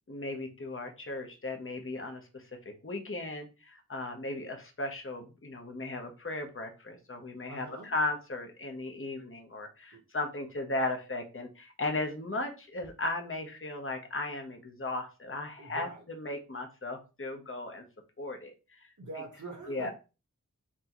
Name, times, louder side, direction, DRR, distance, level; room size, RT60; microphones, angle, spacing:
voice 1, 0.1-17.8 18.2-18.9 19.7-19.9, left 2 dB, 40° left, 4 dB, 0.8 m, -36 dB
voice 2, 7.5-7.9 9.9-10.0 15.6-16.0 19.0-19.9, right 2 dB, 60° right, 1 dB, 1.1 m, -43 dB
5.9 x 2.2 x 2.9 m, 0.31 s
wide cardioid pair, 40°, 34 cm